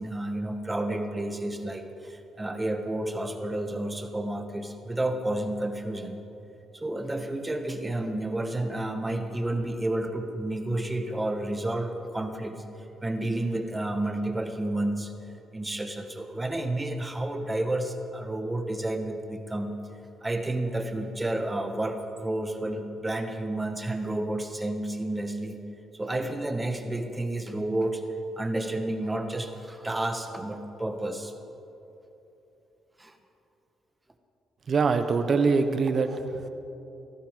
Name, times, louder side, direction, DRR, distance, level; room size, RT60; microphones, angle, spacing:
voice 1, 0.0-6.2 6.7-12.6 13.0-15.1 15.5-19.7 20.2-25.6 25.9-28.0 28.4-31.3 33.0-33.1, right 1 dB, 15° right, 5 dB, 1.6 m, -31 dB
voice 2, 34.7-36.5, right 4 dB, 50° right, 8 dB, 1.2 m, -24 dB
18.0 x 14.5 x 5.3 m, 3.0 s
cardioid pair, 90°, 0 cm